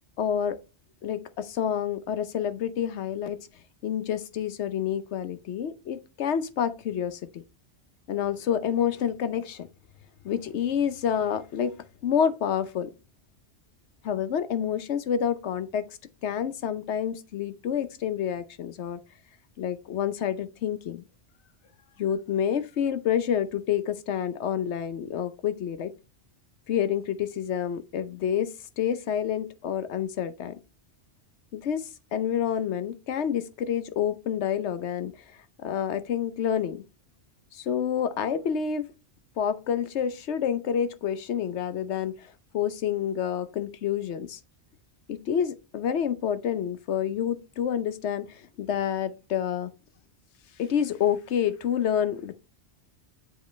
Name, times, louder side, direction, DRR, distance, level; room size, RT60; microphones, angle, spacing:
voice 1, 0.2-0.6 1.0-3.4 3.8-7.4 8.1-9.7 10.2-11.7 12.0-12.9 14.0-15.8 16.2-19.0 19.6-21.0 22.0-25.9 26.7-28.5 28.8-30.5 31.5-35.1 35.6-36.8 37.5-38.9 39.4-44.4 45.1-49.7 50.6-52.3, left 8 dB, 80° left, 1.0 m, -28 dB
7.5 x 5.1 x 3.2 m
omnidirectional pair, 1.2 m